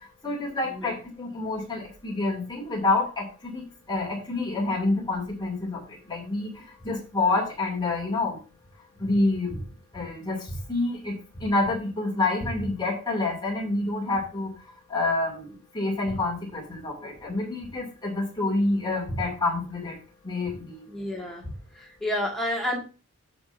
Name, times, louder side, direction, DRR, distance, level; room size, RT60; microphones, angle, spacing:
voice 1, 0.2-8.4 9.0-9.6 9.9-14.5 14.9-20.0 20.2-20.9, left 2 dB, 20° left, -2 dB, 2.6 m, -28 dB
voice 2, 20.9-21.4 21.7-22.8, left 1 dB, ahead, -3 dB, 1.9 m, -30 dB
14.5 x 5.3 x 2.6 m, 0.34 s
head